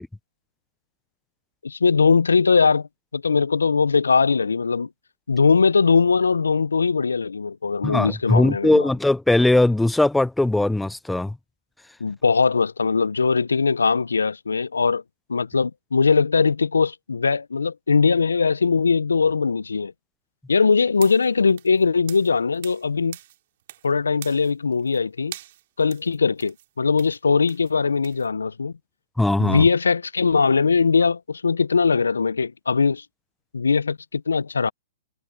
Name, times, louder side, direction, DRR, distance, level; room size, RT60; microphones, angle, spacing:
voice 1, 1.6-2.9 3.1-4.9 5.3-8.9 12.0-15.0 15.3-19.9 20.5-23.2 23.8-25.3 25.8-28.7 29.4-33.0 33.5-34.7, left 5 dB, 85° left, 0.6 m, -20 dB
voice 2, 7.8-11.4 29.2-29.7, left 2 dB, 5° left, 0.5 m, -19 dB
sound 1, 20.9-22.9 23.1-23.9 24.2-25.0 25.3-28.3, right 14 dB, 55° right, 5.4 m, -43 dB
hypercardioid pair, 120°, 0 cm